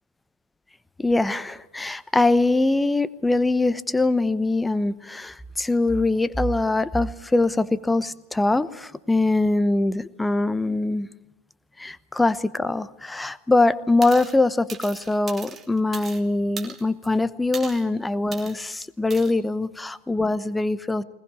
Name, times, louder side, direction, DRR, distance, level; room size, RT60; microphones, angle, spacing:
voice 1, 1.0-11.1 11.8-21.0, left 2 dB, 5° left, 17 dB, 0.9 m, -23 dB
sound 1, 14.0-14.4 14.7-16.2 16.6-17.1 17.5-17.9 18.3-18.6 19.1-19.3, right 5 dB, 15° right, 2.8 m, -38 dB
22.0 x 20.5 x 8.6 m, 0.99 s
figure-of-eight pair, 90°, 0 cm